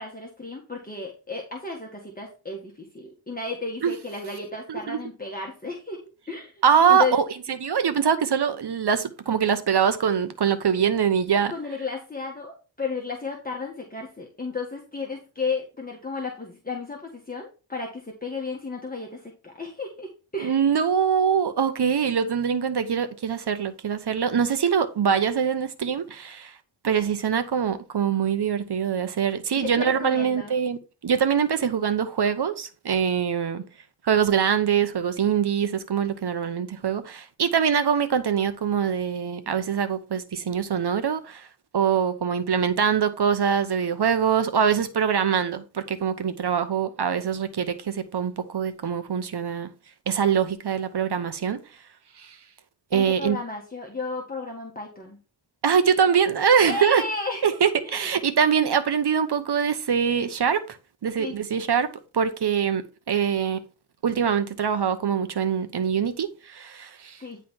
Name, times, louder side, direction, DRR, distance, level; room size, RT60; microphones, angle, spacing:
voice 1, 0.0-6.6 6.9-7.1 11.5-20.6 29.5-30.5 52.9-55.2 56.6-57.5 57.8-58.1 61.2-61.4 67.2-67.4, left 3 dB, 20° left, 1.7 m, -33 dB
voice 2, 6.6-11.5 20.4-26.6 26.8-33.6 34.0-41.5 41.7-49.7 50.1-51.6 52.2-52.4 52.9-53.4 55.6-57.0 57.4-60.8 61.0-63.6 64.0-67.2, right 7 dB, 60° right, 1.0 m, -23 dB
10.0 x 3.5 x 4.4 m
cardioid pair, 55°, 46 cm